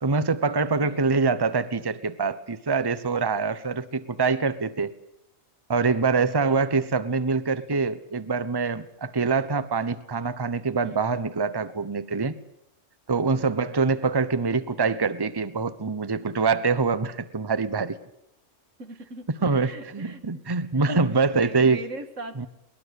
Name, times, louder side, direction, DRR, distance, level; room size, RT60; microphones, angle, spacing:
voice 1, 0.0-4.9 5.7-12.4 13.1-18.0 19.4-21.8 22.4-22.5, right 4 dB, 20° right, 14 dB, 1.0 m, -24 dB
voice 2, 6.1-6.7 10.8-11.0 13.3-13.5 18.8-19.2 19.5-20.2 21.3-22.5, right 2 dB, 85° right, 8 dB, 2.4 m, -40 dB
22.0 x 20.5 x 8.3 m, 0.79 s
omnidirectional pair, 1.3 m